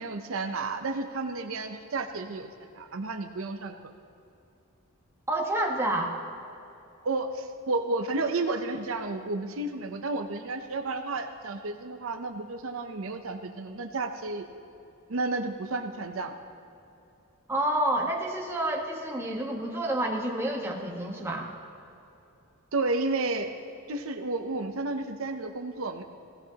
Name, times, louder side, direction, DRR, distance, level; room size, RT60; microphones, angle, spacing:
voice 1, 0.0-2.5 2.8-3.8 7.0-14.5 15.1-16.3 22.7-23.5 23.9-26.0, right 3 dB, 70° right, 6 dB, 0.7 m, -31 dB
voice 2, 5.3-6.1 17.5-21.5, right 1 dB, 10° right, -1 dB, 1.3 m, -29 dB
17.0 x 16.0 x 2.9 m, 2.8 s
head